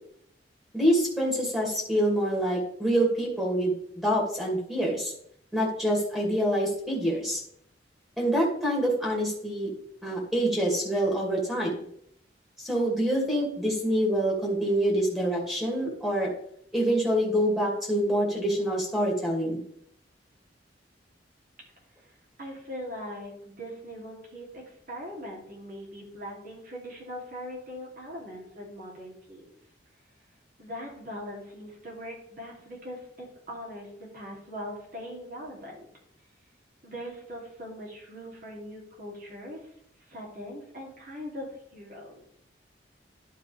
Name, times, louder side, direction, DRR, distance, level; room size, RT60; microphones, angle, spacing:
voice 1, 0.7-5.1 5.5-7.4 8.2-9.7 10.0-11.8 12.6-16.3 16.7-19.6, equal, ahead, -3 dB, 2.2 m, -26 dB
voice 2, 22.4-29.5 30.6-35.9 36.8-39.6 40.1-42.2, equal, 50° right, -3 dB, 2.8 m, -41 dB
11.0 x 5.1 x 3.3 m, 0.70 s
head